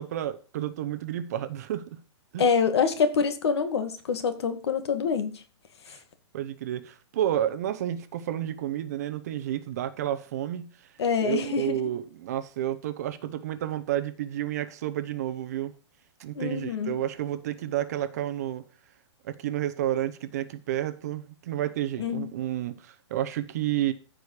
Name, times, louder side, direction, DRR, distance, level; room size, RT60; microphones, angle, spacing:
voice 1, 0.0-2.0 2.3-2.5 5.9-6.0 6.3-10.7 11.2-15.7 16.2-18.6 19.2-23.9, right 12 dB, 35° right, 0.8 m, -30 dB
voice 2, 2.4-5.4 5.9-6.0 11.0-11.8 16.3-17.0 22.0-22.3, left 6 dB, 60° left, 2.0 m, -26 dB
14.5 x 5.1 x 6.5 m
hypercardioid pair, 175°, 15 cm